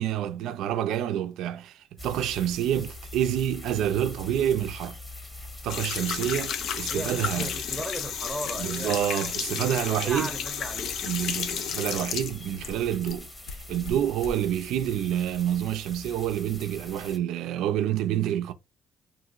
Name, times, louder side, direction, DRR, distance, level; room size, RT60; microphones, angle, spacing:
voice 1, 0.0-5.0 5.6-7.5 8.6-10.3 11.0-13.3 13.7-18.5, right 11 dB, 90° right, 0.3 m, -28 dB
sound 1, 2.0-17.2, left 1 dB, 25° left, 1.1 m, -43 dB
sound 2, 5.7-13.2 13.5-14.3, left 7 dB, 75° left, 0.4 m, -32 dB
voice 2, 6.9-9.0 9.4-11.0, right 1 dB, 10° right, 0.7 m, -37 dB
2.9 x 2.5 x 2.4 m
cardioid pair, 90°, 0 cm